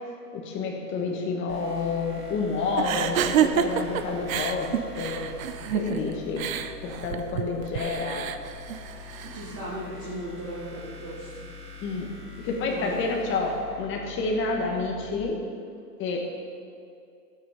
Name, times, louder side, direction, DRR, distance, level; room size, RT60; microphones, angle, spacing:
voice 1, 0.3-5.4 5.7-6.5 6.8-8.2 11.8-12.1 12.4-15.4 16.0-16.2, left 3 dB, 25° left, 0 dB, 1.9 m, -29 dB
sound 1, 1.5-15.2, left 5 dB, 80° right, 2.2 m, -44 dB
sound 2, 2.8-9.6, right 9 dB, 55° right, 0.8 m, -29 dB
voice 2, 9.2-11.5 12.7-12.9, right 1 dB, 10° right, -7 dB, 0.3 m, -37 dB
13.0 x 8.6 x 5.3 m, 2.5 s
hypercardioid pair, 125°, 48 cm